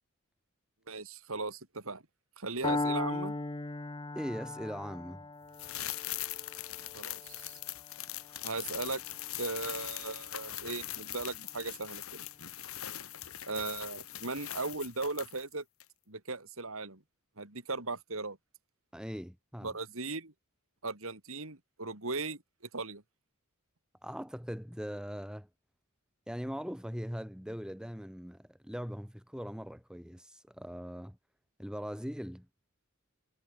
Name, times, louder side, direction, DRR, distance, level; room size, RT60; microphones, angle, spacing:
voice 1, 0.9-2.0 2.4-3.3 6.9-7.6 8.4-9.0 9.4-12.2 13.4-15.6 16.1-17.0 17.4-18.4 19.6-20.3 20.8-22.4 22.7-23.0, right 3 dB, 70° right, 3.6 m, -38 dB
Piano, 2.6-10.6, left 2 dB, 20° left, 0.9 m, -38 dB
voice 2, 4.2-5.3 18.9-19.8 24.0-25.5 26.3-31.2 31.6-32.5, equal, 5° right, 3.7 m, -40 dB
sound 1, 5.5-15.5 15.8-15.9, left 13 dB, 80° left, 5.3 m, -41 dB
head